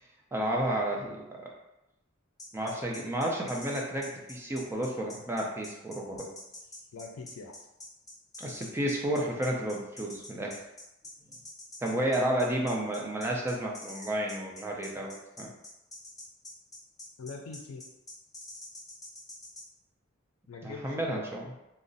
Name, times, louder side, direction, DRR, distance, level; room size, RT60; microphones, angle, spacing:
voice 1, 0.3-1.5 2.5-6.3 8.4-10.6 11.3-11.4 11.8-15.5 20.6-21.5, right 1 dB, 10° right, -1 dB, 0.5 m, -31 dB
sound 1, 2.4-19.6, left 2 dB, 20° left, 0.8 m, -45 dB
voice 2, 6.9-7.5 17.2-17.8 20.5-21.3, left 4 dB, 85° left, 2 dB, 0.4 m, -43 dB
2.4 x 2.0 x 3.8 m, 0.92 s
head